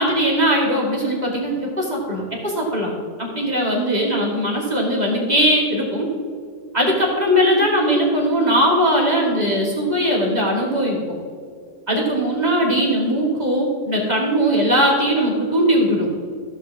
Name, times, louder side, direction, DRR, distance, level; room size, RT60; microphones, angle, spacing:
voice 1, 0.0-2.9 3.2-6.1 6.7-11.0 11.9-16.1, equal, 25° right, -3 dB, 2.4 m, -19 dB
15.0 x 7.7 x 3.6 m, 2.2 s
omnidirectional pair, 1.8 m